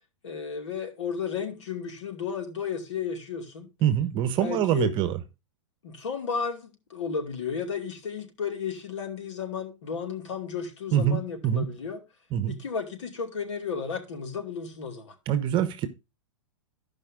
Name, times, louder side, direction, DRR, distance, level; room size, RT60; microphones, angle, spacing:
voice 1, 0.2-3.7 4.4-4.9 5.8-12.0 12.5-15.1, left 6 dB, 75° left, 2.6 m, -33 dB
voice 2, 3.8-5.2 10.9-11.7 12.3-12.6 15.3-15.9, right 10 dB, 30° right, 1.1 m, -25 dB
14.0 x 5.4 x 3.7 m
hypercardioid pair, 130°, 16 cm